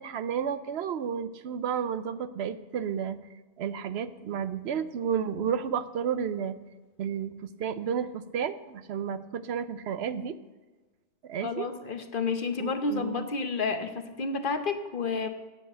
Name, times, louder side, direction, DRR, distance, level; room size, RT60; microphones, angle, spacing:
voice 1, 0.0-3.2 3.6-6.6 7.0-10.4 11.2-11.7 12.6-13.2, right 7 dB, 75° right, 12 dB, 0.8 m, -32 dB
voice 2, 11.4-15.3, left 4 dB, 50° left, 8 dB, 1.0 m, -30 dB
9.5 x 7.8 x 7.8 m, 1.2 s
omnidirectional pair, 1.1 m